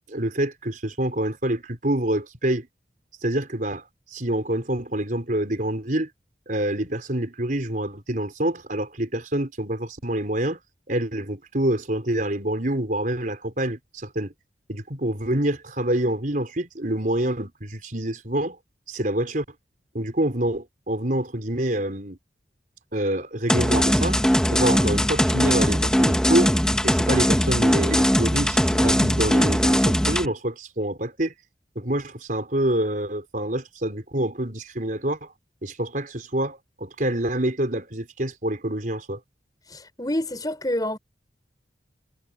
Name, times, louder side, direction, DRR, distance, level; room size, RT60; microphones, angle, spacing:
voice 1, 0.0-2.7 3.2-3.8 4.1-6.1 6.5-10.6 10.9-14.3 14.7-18.6 18.9-19.4 19.9-22.2 22.9-24.2 24.5-26.5 26.8-31.3 31.7-35.3 35.6-39.2, right 1 dB, 45° right, 4.7 m, -26 dB
sound 1, 23.5-30.3, equal, 5° left, 2.0 m, -20 dB
voice 2, 39.7-41.0, left 1 dB, 20° left, 6.6 m, -27 dB
head